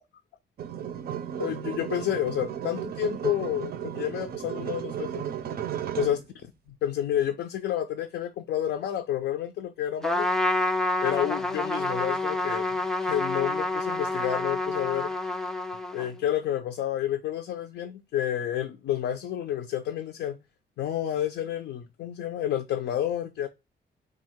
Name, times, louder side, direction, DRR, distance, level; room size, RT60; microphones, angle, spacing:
sound 1, 0.6-6.3, right 10 dB, 60° right, 0.5 m, -34 dB
voice 1, 1.4-5.3 6.0-6.2 6.8-10.3 11.0-15.1 15.9-20.3 20.8-23.5, left 11 dB, 80° left, 0.4 m, -30 dB
Trumpet, 10.0-16.2, left 2 dB, ahead, 0.3 m, -28 dB
3.6 x 2.4 x 4.5 m
cardioid pair, 105°, 18 cm